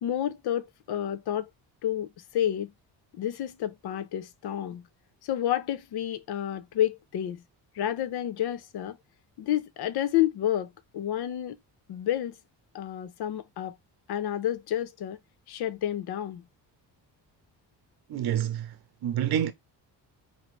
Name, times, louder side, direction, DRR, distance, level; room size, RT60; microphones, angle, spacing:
voice 1, 0.0-1.5 1.8-2.7 3.1-4.8 5.2-7.4 7.7-9.0 9.4-10.7 10.9-11.6 11.9-12.3 12.7-13.7 14.1-15.2 15.5-16.4, left 11 dB, 60° left, 0.6 m, -30 dB
voice 2, 18.1-18.7 19.0-19.5, right 10 dB, 60° right, 0.8 m, -27 dB
4.1 x 2.8 x 3.1 m
cardioid pair, 110°, 43 cm